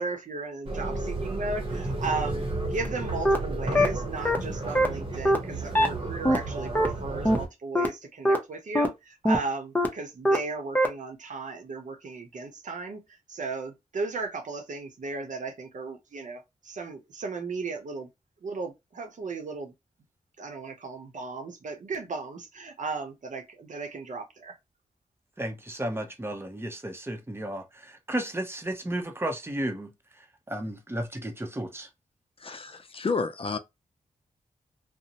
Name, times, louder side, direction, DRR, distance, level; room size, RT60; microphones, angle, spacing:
voice 1, 0.0-18.1 18.4-19.7 20.4-24.6, right 3 dB, 65° right, 0.7 m, -36 dB
sound 1, 0.7-7.5, right 2 dB, 40° right, 1.0 m, -32 dB
sound 2, 2.8-2.9 3.2-3.4 3.7-3.9 4.2-4.4 4.7-4.9 5.2-5.4 5.7-5.9 6.2-6.4 6.7-6.9 7.2-7.4 7.7-7.9 8.2-8.4 8.7-8.9 9.2-9.4 9.7-9.9 10.2-10.4 10.7-10.9, equal, 10° left, 0.7 m, -21 dB
voice 2, 25.4-29.9 30.5-31.9, right 1 dB, 15° right, 0.8 m, -33 dB
voice 3, 32.4-33.6, left 4 dB, 40° left, 0.5 m, -30 dB
2.5 x 2.1 x 2.8 m
cardioid pair, 50°, 14 cm